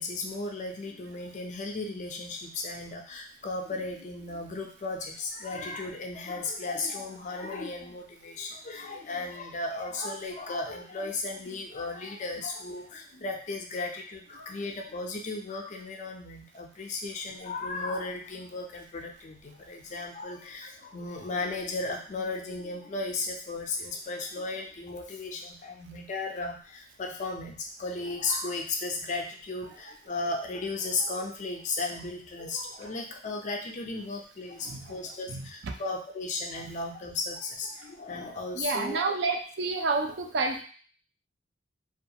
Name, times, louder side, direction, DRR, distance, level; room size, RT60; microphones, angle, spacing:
voice 1, 0.0-39.1, left 3 dB, 40° left, 2 dB, 0.4 m, -35 dB
voice 2, 38.6-40.6, right 3 dB, 60° right, 4 dB, 0.4 m, -29 dB
2.3 x 2.2 x 2.7 m, 0.43 s
head